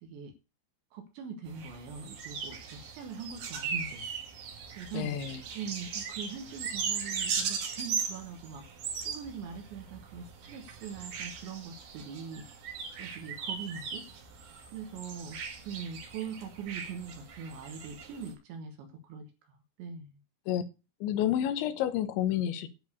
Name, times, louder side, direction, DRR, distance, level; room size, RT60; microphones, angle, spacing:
voice 1, 0.0-0.3 0.9-4.1 4.8-5.2 5.5-8.7 9.0-12.5 13.0-14.1 14.7-15.4 15.6-20.2, right 6 dB, 70° right, 3.3 m, -42 dB
sound 1, 1.5-18.3, right 6 dB, 55° right, 3.1 m, -38 dB
voice 2, 4.9-5.4 20.5-20.6 21.0-22.7, left 11 dB, 75° left, 3.1 m, -29 dB
10.5 x 4.8 x 8.2 m
omnidirectional pair, 5.7 m